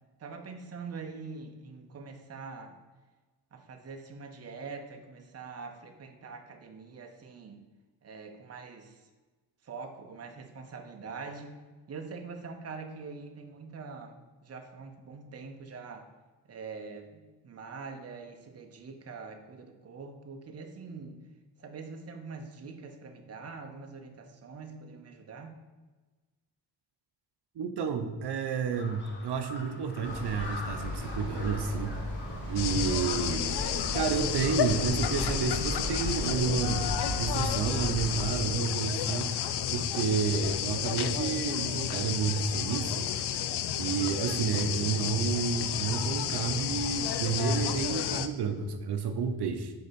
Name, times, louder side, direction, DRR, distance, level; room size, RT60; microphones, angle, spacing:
voice 1, 0.2-2.8 3.5-7.6 8.0-9.0 9.6-11.6 11.9-16.1 16.4-21.2 21.6-25.5, right 4 dB, 40° right, 5 dB, 0.7 m, -44 dB
voice 2, 27.6-32.0 32.5-33.5 33.9-39.4 39.7-43.1 43.8-49.7, right 5 dB, 85° right, 7 dB, 0.7 m, -30 dB
Crow, 28.7-38.5, left 2 dB, 30° left, 1.0 m, -46 dB
sound 1, 30.0-38.3, equal, 60° left, 2.2 m, -36 dB
sound 2, 32.6-48.3, left 10 dB, 85° left, 0.5 m, -31 dB
6.7 x 4.3 x 5.1 m, 1.3 s
wide cardioid pair, 160°, 39 cm